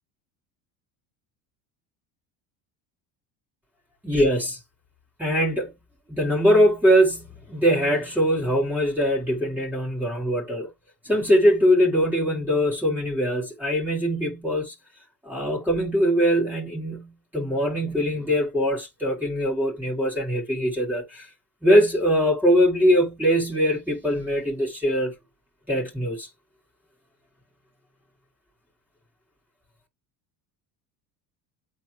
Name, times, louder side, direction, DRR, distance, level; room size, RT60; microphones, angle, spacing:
voice 1, 4.0-4.6 5.2-5.7 6.1-10.7 11.0-14.7 15.2-21.3 21.6-25.1 25.7-26.3, equal, 5° right, 3.5 m, -22 dB
8.4 x 4.7 x 2.3 m
supercardioid pair, 110°, 42 cm